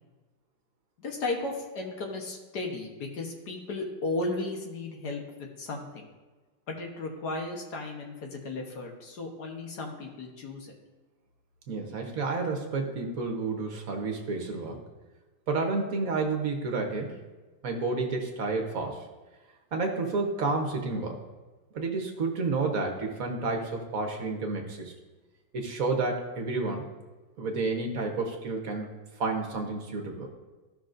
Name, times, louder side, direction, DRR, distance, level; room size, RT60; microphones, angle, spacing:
voice 1, 1.0-6.1 6.7-10.7, left 2 dB, 60° left, 1 dB, 1.6 m, -35 dB
voice 2, 11.7-14.8 15.5-17.2 17.6-19.1 19.7-21.2 21.7-24.9 25.5-26.8 27.4-30.3, right 3 dB, 55° right, 2 dB, 1.3 m, -30 dB
14.5 x 5.7 x 2.6 m, 1.2 s
omnidirectional pair, 2.0 m